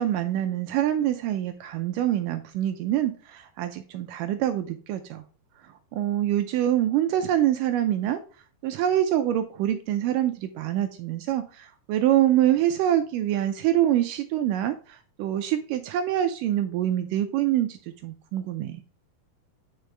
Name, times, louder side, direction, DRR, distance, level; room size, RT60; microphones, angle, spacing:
voice 1, 0.0-5.2 5.9-8.2 8.6-18.8, right 12 dB, 85° right, 8 dB, 1.9 m, -25 dB
8.9 x 5.0 x 3.3 m, 0.40 s
omnidirectional pair, 4.3 m